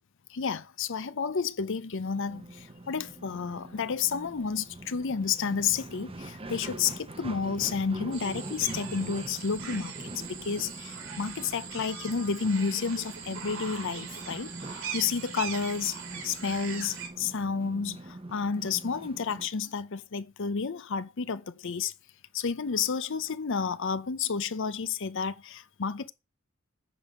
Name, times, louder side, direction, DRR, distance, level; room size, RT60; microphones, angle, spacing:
voice 1, 0.3-9.9 10.3-16.0 16.2-21.9 22.3-26.1, left 5 dB, 65° left, 0.6 m, -31 dB
sound 1, 2.1-19.5, right 2 dB, 25° right, 0.9 m, -44 dB
sound 2, 8.1-17.1, right 7 dB, 75° right, 3.2 m, -41 dB
9.4 x 5.4 x 6.4 m
head